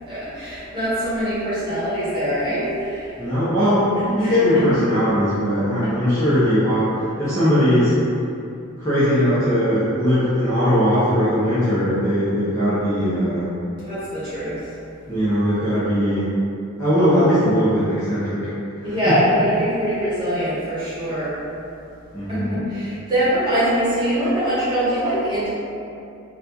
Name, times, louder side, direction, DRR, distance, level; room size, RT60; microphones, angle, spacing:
voice 1, 0.1-3.1 4.2-4.6 5.8-5.9 12.9-13.0 13.8-14.6 18.8-21.3 22.3-25.5, equal, 20° right, -12 dB, 1.2 m, -23 dB
voice 2, 3.2-3.9 4.2-7.9 8.8-13.5 15.1-16.3 16.8-18.5 18.8-19.2 22.1-22.6, equal, 15° left, -14 dB, 0.6 m, -19 dB
4.1 x 2.3 x 2.5 m, 2.6 s
head